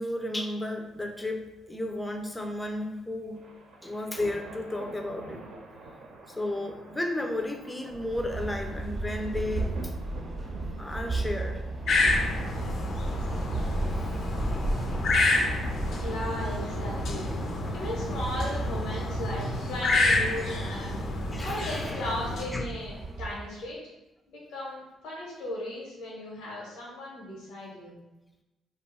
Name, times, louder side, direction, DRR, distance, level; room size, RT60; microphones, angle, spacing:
voice 1, 0.0-3.5 3.8-5.4 6.3-9.9 10.8-11.6 21.3-22.1 22.5-22.7, left 1 dB, 10° left, 4 dB, 0.4 m, -33 dB
sound 1, 0.8-17.7, right 2 dB, 80° right, 0.6 m, -46 dB
sound 2, 7.9-23.6, right 2 dB, 35° right, 0.7 m, -34 dB
sound 3, 11.9-22.4, left 2 dB, 70° left, 0.5 m, -29 dB
voice 2, 16.0-17.3 17.7-23.8 24.3-28.0, left 1 dB, 90° left, -5 dB, 1.0 m, -37 dB
2.4 x 2.3 x 4.0 m, 0.99 s
cardioid pair, 90°, 0 cm